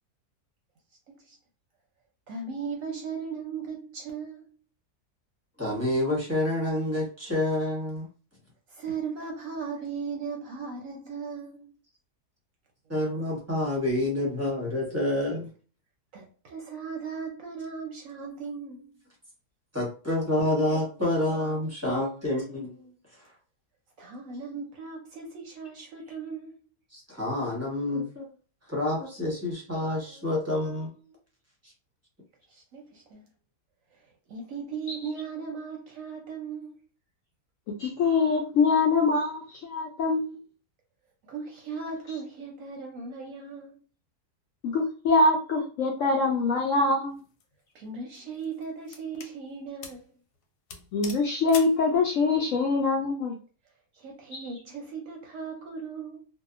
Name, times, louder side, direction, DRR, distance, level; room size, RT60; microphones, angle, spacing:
voice 1, 1.1-1.4 2.3-4.5 8.7-11.7 16.1-18.9 24.0-26.6 32.5-33.2 33.9-36.8 41.2-43.8 47.7-50.1 53.9-56.3, right 5 dB, 65° right, 0.9 m, -37 dB
voice 2, 5.6-8.1 12.9-15.5 19.7-23.2 26.9-28.3 28.7-31.1 31.6-31.7, left 1 dB, 15° right, 0.7 m, -28 dB
voice 3, 37.8-40.4 44.6-47.2 50.9-53.4 54.3-54.4, left 3 dB, 70° left, 0.8 m, -24 dB
sound 1, 47.1-47.4 48.1-49.4 49.8-50.1 50.3-50.4 50.7-51.8, left 6 dB, 90° left, 1.2 m, -42 dB
2.7 x 2.3 x 2.4 m
omnidirectional pair, 1.7 m